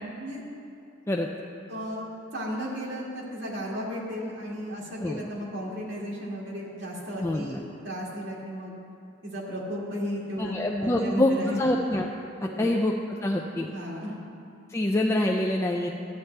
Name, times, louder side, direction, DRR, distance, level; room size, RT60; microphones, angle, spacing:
voice 1, 1.7-2.1 2.3-8.7 9.2-11.6 12.4-12.7 13.6-14.1, equal, 70° right, -4 dB, 2.1 m, -34 dB
voice 2, 7.2-7.6 10.4-12.1 12.4-13.7 14.7-15.9, left 1 dB, 15° left, 0 dB, 0.4 m, -26 dB
13.0 x 9.1 x 3.3 m, 2.7 s
head